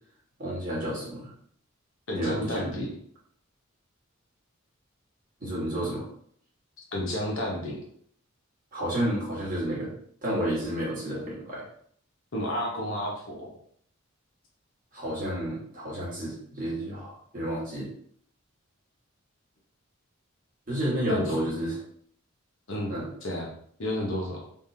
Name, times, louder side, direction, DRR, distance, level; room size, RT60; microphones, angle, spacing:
voice 1, 0.4-1.3 2.1-2.7 5.4-6.1 8.7-9.9 10.2-11.6 14.9-17.9 20.7-21.8 22.9-23.0, right 1 dB, 40° right, -6 dB, 1.6 m, -31 dB
voice 2, 2.1-2.9 6.9-7.8 12.3-13.5 21.1-21.3 22.7-22.9 23.2-23.5 23.8-24.4, left 1 dB, 65° left, -1 dB, 1.0 m, -31 dB
3.5 x 3.3 x 2.8 m, 0.62 s
head